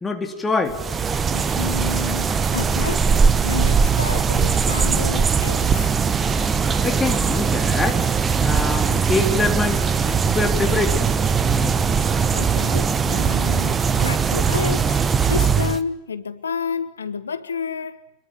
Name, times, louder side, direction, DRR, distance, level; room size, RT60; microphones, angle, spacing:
voice 1, 0.0-0.8 6.8-8.0 8.4-11.7, left 3 dB, 10° left, 3.6 m, -25 dB
sound 1, 0.7-15.8, right 6 dB, 20° right, 1.2 m, -20 dB
voice 2, 1.3-5.9 12.3-18.0, left 6 dB, 70° left, 1.1 m, -30 dB
27.0 x 21.5 x 9.7 m
figure-of-eight pair, 90°, 0 cm